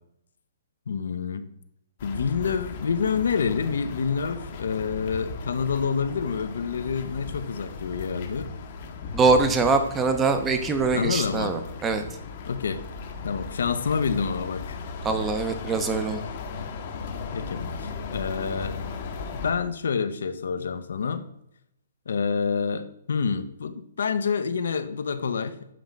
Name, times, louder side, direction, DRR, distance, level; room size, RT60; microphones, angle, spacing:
voice 1, 0.9-1.5 2.0-8.5 10.9-11.5 12.5-12.8 13.2-14.8 17.3-18.8 19.4-21.2 22.1-25.6, left 6 dB, 75° left, 11 dB, 0.6 m, -28 dB
sound 1, 2.0-19.5, left 4 dB, 40° left, 0.8 m, -37 dB
voice 2, 9.1-12.0 15.0-16.2, right 4 dB, 10° right, 7 dB, 0.5 m, -23 dB
7.6 x 3.0 x 5.1 m, 0.79 s
hypercardioid pair, 165°, 0 cm